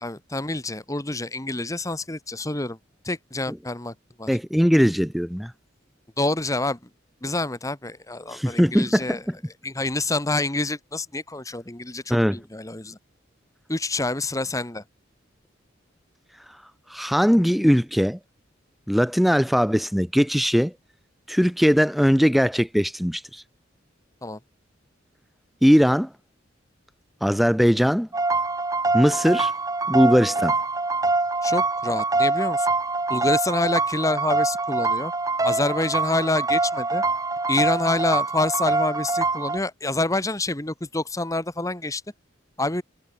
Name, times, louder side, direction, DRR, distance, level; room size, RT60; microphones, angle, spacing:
voice 1, 0.0-2.8 3.0-3.9 4.2-4.3 6.2-6.8 7.2-9.2 9.6-13.0 13.7-14.8 24.2-24.4 31.4-32.7 33.1-35.1 35.4-37.0 37.5-42.0 42.6-42.8, left 2 dB, 15° left, 1.6 m, -27 dB
voice 2, 4.3-5.5 8.3-9.4 12.1-12.4 16.9-18.2 18.9-20.7 21.3-23.4 25.6-26.1 27.2-28.1 28.9-29.5 29.9-30.6, equal, ahead, 1.4 m, -20 dB
sound 1, 28.1-39.6, right 3 dB, 20° right, 1.3 m, -24 dB
head